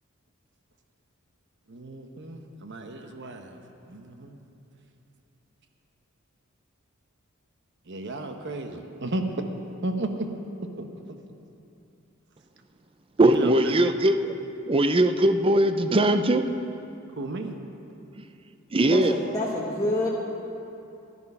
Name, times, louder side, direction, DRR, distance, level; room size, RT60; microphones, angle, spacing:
voice 1, 1.7-4.4 7.9-9.3 9.8-10.3 10.8-10.9 13.2-13.9 17.2-17.6, right 2 dB, 60° right, 5 dB, 1.0 m, -34 dB
voice 2, 13.2-14.3 14.7-16.5 18.7-19.1, right 1 dB, 25° right, 9 dB, 0.5 m, -20 dB
voice 3, 18.8-20.1, left 1 dB, 15° left, -5 dB, 1.2 m, -28 dB
14.0 x 11.0 x 5.5 m, 2.8 s
head